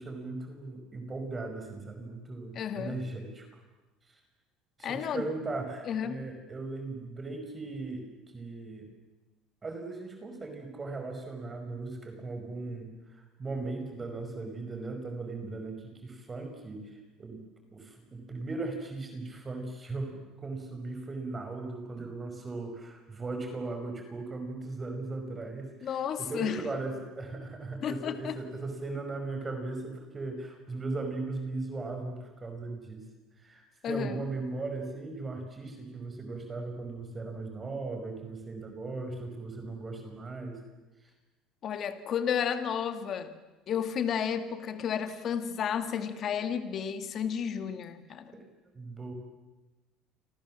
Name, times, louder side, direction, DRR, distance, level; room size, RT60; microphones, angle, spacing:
voice 1, 0.0-3.5 4.1-4.2 4.8-8.1 8.3-8.9 9.6-17.4 17.7-33.0 33.4-40.6 48.1-48.4 48.7-49.1, right 3 dB, 20° right, 5 dB, 5.4 m, -38 dB
voice 2, 2.6-3.0 4.8-5.2 5.9-6.2 25.8-26.6 27.8-28.4 33.8-34.1 41.6-43.3 43.7-48.3, left 8 dB, 45° left, 9 dB, 2.2 m, -32 dB
29.5 x 25.5 x 7.6 m, 1.1 s
cardioid pair, 135°, 0 cm